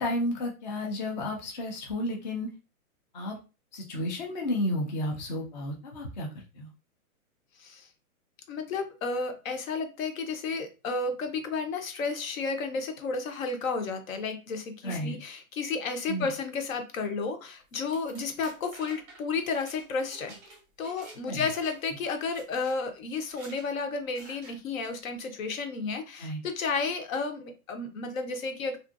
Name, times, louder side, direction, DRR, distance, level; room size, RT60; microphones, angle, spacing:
voice 1, 0.0-2.5 3.1-3.4 3.7-6.7 14.8-15.2 16.1-16.3 21.3-21.5 26.2-26.4, left 1 dB, 35° left, 0 dB, 0.4 m, -32 dB
voice 2, 8.5-20.3 20.8-28.8, left 4 dB, 65° left, 6 dB, 0.9 m, -32 dB
sound 1, 17.7-21.2 21.5-21.9 22.3-22.8 23.2-23.7 24.1-24.6, right 2 dB, 15° right, 0.6 m, -50 dB
2.5 x 2.5 x 2.4 m, 0.32 s
hypercardioid pair, 155°, 43 cm